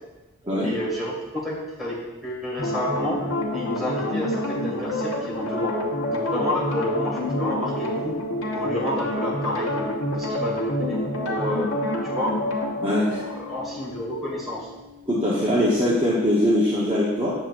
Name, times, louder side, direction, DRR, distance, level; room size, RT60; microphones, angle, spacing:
voice 1, 0.6-2.0 2.2-3.2 3.5-5.8 6.1-8.2 8.5-11.8 12.0-12.4 12.9-14.7, left 1 dB, ahead, -6 dB, 2.1 m, -30 dB
sound 1, 2.6-15.7 16.0-16.1, left 1 dB, 60° left, 1.1 m, -28 dB
voice 2, 12.8-13.2 15.1-17.3, left 1 dB, 20° right, -7 dB, 1.0 m, -21 dB
7.7 x 7.5 x 2.6 m, 1.1 s
head